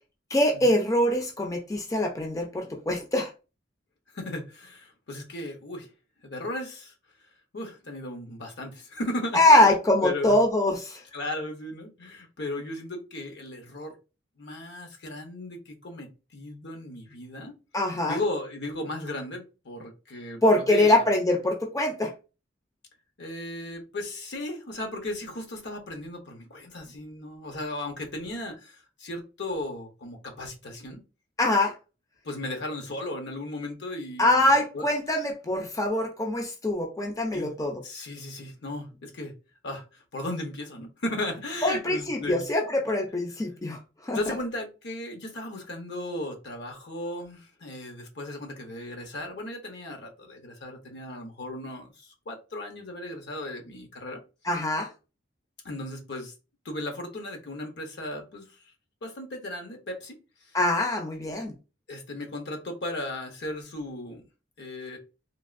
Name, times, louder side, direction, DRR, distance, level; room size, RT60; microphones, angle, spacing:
voice 1, 0.3-3.3 9.3-11.0 17.7-18.2 20.4-22.1 31.4-31.8 34.2-37.7 41.6-44.2 54.5-54.9 60.5-61.5, left 1 dB, 20° left, 0.5 m, -23 dB
voice 2, 4.1-5.9 6.2-6.9 7.5-10.4 11.1-14.0 14.4-17.5 18.1-21.0 23.2-31.0 32.2-34.9 37.3-37.6 37.8-39.4 39.6-42.5 44.1-54.2 55.6-56.3 56.6-58.5 59.0-60.2 61.9-64.3 64.6-65.0, left 1 dB, 65° left, 0.9 m, -36 dB
3.4 x 2.4 x 2.4 m
head